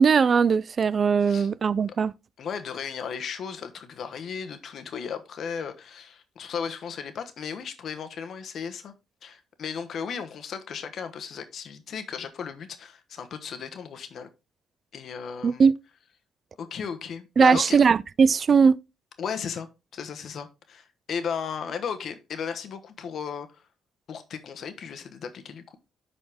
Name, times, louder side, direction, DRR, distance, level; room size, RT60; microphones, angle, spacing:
voice 1, 0.0-2.1 15.4-15.7 17.4-18.8, right 5 dB, 45° right, 0.3 m, -19 dB
voice 2, 2.4-8.9 9.2-14.3 14.9-15.7 16.6-17.8 19.2-23.6 24.1-25.8, left 7 dB, 60° left, 1.1 m, -35 dB
10.5 x 4.2 x 3.5 m
cardioid pair, 90°, 0 cm